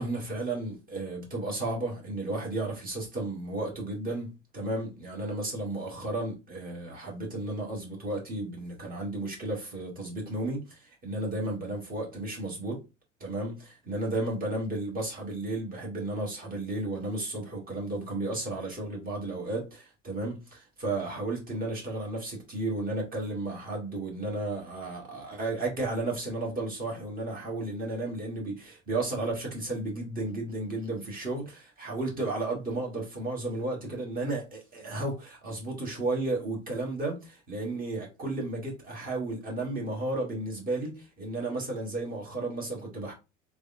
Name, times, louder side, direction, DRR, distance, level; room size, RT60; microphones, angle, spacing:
voice 1, 0.0-12.8 13.2-31.5 31.8-43.1, right 2 dB, 25° right, 1.3 m, -33 dB
3.3 x 2.2 x 2.5 m
figure-of-eight pair, 75°, 38 cm